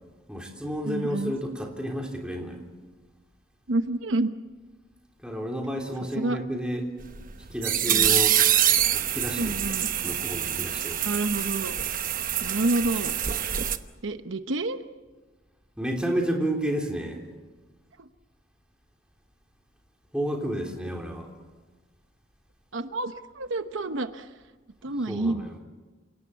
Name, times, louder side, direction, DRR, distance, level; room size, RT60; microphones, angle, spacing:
voice 1, 0.3-2.6 5.2-6.9 7.5-8.4 8.9-9.8 10.0-11.0 15.8-17.2 20.1-21.3 24.8-25.6, equal, 5° right, 1 dB, 3.4 m, -31 dB
voice 2, 0.8-1.3 3.7-4.3 6.2-6.4 7.9-8.2 9.4-9.9 11.0-11.7 12.4-13.1 14.0-14.8 18.0-18.1 22.7-24.3 24.8-25.5, right 2 dB, 75° right, 9 dB, 1.0 m, -28 dB
sound 1, 7.0-13.8, right 10 dB, 45° right, 1.0 m, -25 dB
28.5 x 18.0 x 8.3 m, 1.3 s
head